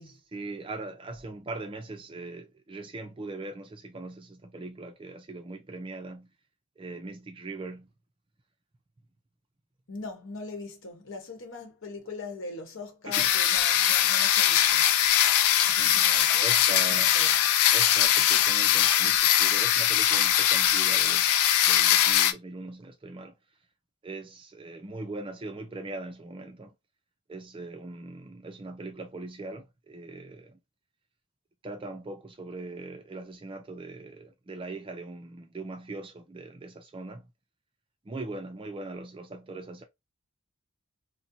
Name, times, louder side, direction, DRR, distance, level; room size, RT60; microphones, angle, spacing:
voice 1, 0.3-6.3 6.8-7.9 13.0-13.3 15.8-17.2 17.7-23.4 24.0-26.7 27.3-30.6 31.6-37.3 38.1-39.8, right 2 dB, 25° right, 0.4 m, -40 dB
voice 2, 9.9-14.9 15.6-17.3, left 3 dB, 55° left, 1.0 m, -41 dB
sound 1, 13.1-22.3, left 11 dB, 80° left, 0.4 m, -22 dB
4.2 x 2.1 x 2.6 m
head